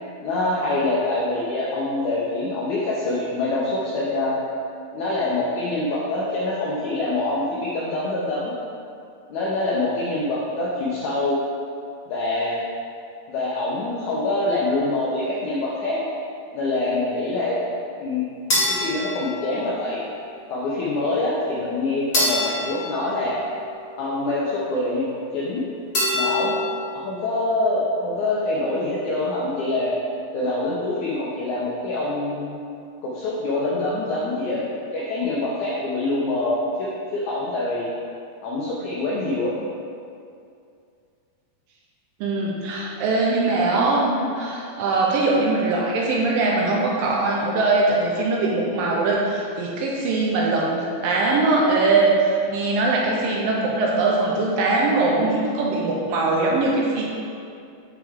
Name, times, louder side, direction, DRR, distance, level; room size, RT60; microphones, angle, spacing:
voice 1, 0.2-4.4 4.9-8.5 9.3-11.4 12.1-12.6 13.3-16.0 16.5-17.6 18.0-20.0 20.5-23.3 24.0-25.6 26.1-26.5 26.9-29.9 30.3-32.6 33.0-34.6 34.9-37.9 38.4-39.5, left 2 dB, 80° left, -6 dB, 1.7 m, -25 dB
sound 1, 18.5-20.0 22.1-24.0 25.9-27.1, left 1 dB, 50° left, 1.2 m, -26 dB
voice 2, 42.2-57.0, right 3 dB, 80° right, -2 dB, 2.2 m, -21 dB
6.2 x 5.8 x 3.5 m, 2.4 s
omnidirectional pair, 4.3 m